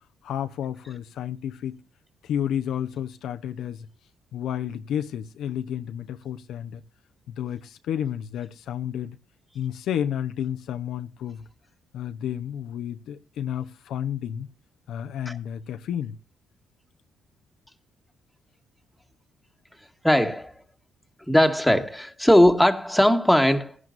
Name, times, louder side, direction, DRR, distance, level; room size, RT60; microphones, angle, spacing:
voice 1, 0.2-1.8 2.2-3.9 4.3-6.8 7.3-9.2 9.5-11.4 11.9-14.5 14.9-16.2, left 9 dB, 75° left, 0.8 m, -31 dB
voice 2, 20.0-20.5 21.3-23.8, equal, ahead, 1.8 m, -19 dB
17.5 x 11.0 x 2.6 m
cardioid pair, 90°, 0 cm